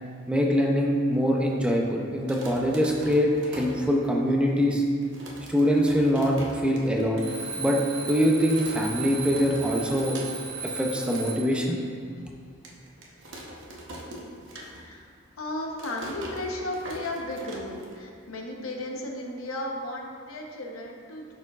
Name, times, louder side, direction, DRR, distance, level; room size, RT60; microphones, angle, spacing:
voice 1, 0.3-4.8 5.5-7.3 7.5-10.2 10.6-11.8, equal, 5° right, -1 dB, 0.4 m, -24 dB
sound 1, 2.1-4.4 4.7-4.8 5.0-7.1 7.4-7.5 7.7-8.1 8.5-10.6 10.9-11.3 11.8-11.9 12.6-15.1 15.4-18.3, equal, 60° right, 0.9 m, -42 dB
Alarm, 7.2-11.6, right 4 dB, 85° right, 1.6 m, -36 dB
voice 2, 14.8-15.1 15.4-21.3, left 1 dB, 85° left, 0 dB, 0.9 m, -35 dB
10.5 x 4.4 x 2.4 m, 2.2 s
head